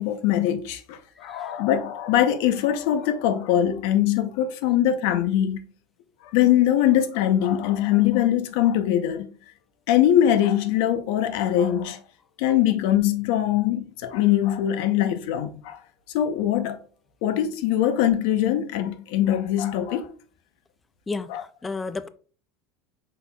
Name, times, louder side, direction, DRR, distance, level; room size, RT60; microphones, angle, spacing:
voice 1, 0.0-5.6 6.3-9.3 9.9-12.0 12.4-15.8 16.1-16.8 17.2-20.1 21.3-21.4, left 11 dB, 70° left, 0.6 m, -22 dB
voice 2, 21.1-22.1, left 3 dB, 15° left, 0.3 m, -32 dB
5.5 x 4.2 x 2.3 m
supercardioid pair, 145°, 0 cm